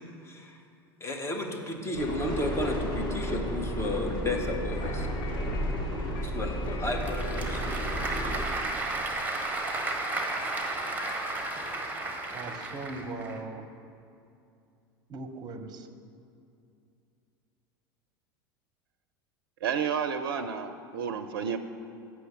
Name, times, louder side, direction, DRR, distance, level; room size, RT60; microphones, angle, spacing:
voice 1, 0.2-0.6 1.0-5.1 6.2-8.4, left 1 dB, 20° left, 2 dB, 1.3 m, -33 dB
sound 1, 1.9-8.4, equal, 40° left, 2.0 m, -32 dB
sound 2, 4.3-12.6, left 6 dB, 70° left, 0.8 m, -48 dB
Applause / Crowd, 6.6-13.4, right 2 dB, 15° right, 1.3 m, -33 dB
voice 2, 12.3-13.7 15.1-15.9, right 3 dB, 35° right, 8 dB, 0.8 m, -39 dB
voice 3, 19.6-21.6, right 7 dB, 70° right, 9 dB, 0.4 m, -31 dB
8.0 x 6.0 x 6.8 m, 2.6 s
hypercardioid pair, 80°, 12 cm